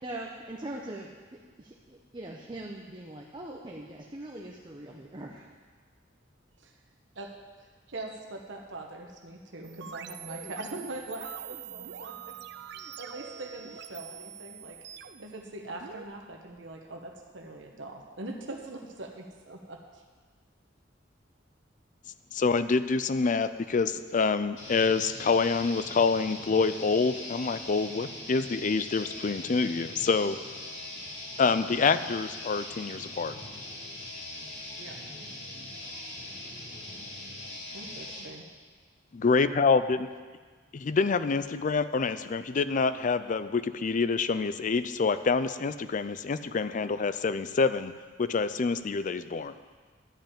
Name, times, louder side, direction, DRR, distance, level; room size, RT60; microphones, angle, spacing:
voice 1, 0.0-5.5, right 1 dB, 25° right, -1 dB, 0.8 m, -41 dB
voice 2, 7.6-12.3 12.7-14.8 15.2-20.0 34.8-34.9 37.7-38.4, right 2 dB, 80° right, 2 dB, 1.1 m, -42 dB
sound 1, 9.6-16.1, right 8 dB, 60° right, 0.5 m, -44 dB
voice 3, 22.3-30.4 31.4-33.3 39.2-40.1 40.7-47.9 48.2-49.5, left 4 dB, 45° left, 13 dB, 0.4 m, -26 dB
sound 2, 24.6-38.3, left 1 dB, 85° left, 2.5 m, -41 dB
11.5 x 5.5 x 8.8 m, 1.5 s
head